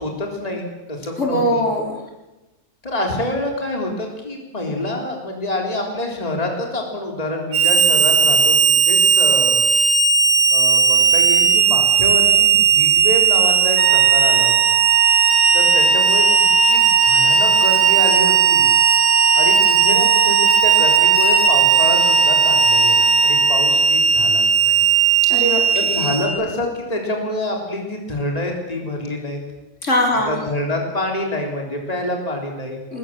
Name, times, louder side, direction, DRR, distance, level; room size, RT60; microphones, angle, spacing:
voice 1, 0.0-1.6 2.8-9.6 10.5-14.7 15.5-16.3 16.6-18.7 19.3-24.8 25.7-29.4 30.3-32.8, left 1 dB, 25° left, 1 dB, 3.7 m, -27 dB
voice 2, 1.2-1.9 25.3-26.1 29.8-30.4 32.9-33.0, left 1 dB, 50° left, 0 dB, 4.4 m, -21 dB
Harmonica, 7.5-26.3, right 5 dB, 80° right, 4.1 m, -16 dB
sound 1, 13.7-23.7, right 9 dB, 55° right, 6.2 m, -22 dB
23.0 x 20.5 x 7.6 m, 1.1 s
omnidirectional pair, 1.6 m